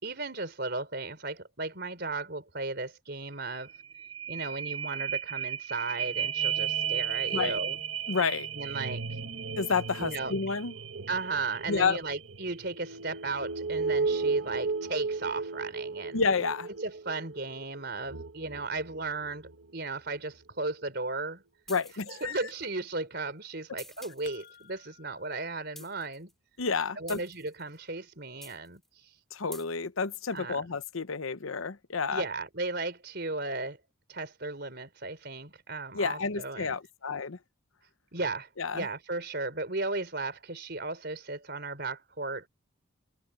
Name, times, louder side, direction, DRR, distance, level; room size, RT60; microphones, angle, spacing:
voice 1, 0.0-3.7 4.3-7.8 8.5-9.1 10.0-10.3 11.1-16.2 16.8-21.4 22.1-26.3 27.0-28.8 30.3-30.6 32.1-33.8 34.1-36.8 38.1-42.5, right 3 dB, 50° right, 4.4 m, -35 dB
sound 1, 3.3-3.4 3.7-19.6 20.1-20.2, right 6 dB, 75° right, 1.5 m, -34 dB
voice 2, 8.1-8.5 9.6-10.7 11.7-12.0 16.1-16.7 21.7-22.4 26.6-27.2 29.3-32.2 35.9-37.4 38.6-38.9, left 5 dB, 80° left, 0.9 m, -30 dB
sound 2, 21.7-22.6 23.8-24.6 25.8-26.3 27.1-27.8 28.4-28.9 29.5-29.7, left 1 dB, ahead, 4.8 m, -48 dB
sound 3, 24.1-25.3, left 8 dB, 40° left, 5.7 m, -54 dB
head